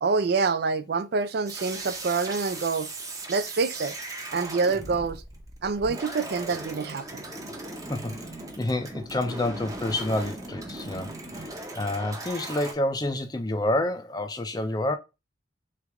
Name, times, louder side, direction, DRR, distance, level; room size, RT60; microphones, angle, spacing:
voice 1, 0.0-2.9 3.3-3.9 4.3-5.2 5.6-7.2, right 4 dB, 55° right, 0.4 m, -26 dB
sound 1, 1.5-12.7, right 2 dB, 15° right, 0.7 m, -38 dB
voice 2, 7.9-8.3 8.6-15.0, left 1 dB, 20° left, 0.5 m, -28 dB
3.5 x 3.3 x 3.4 m
head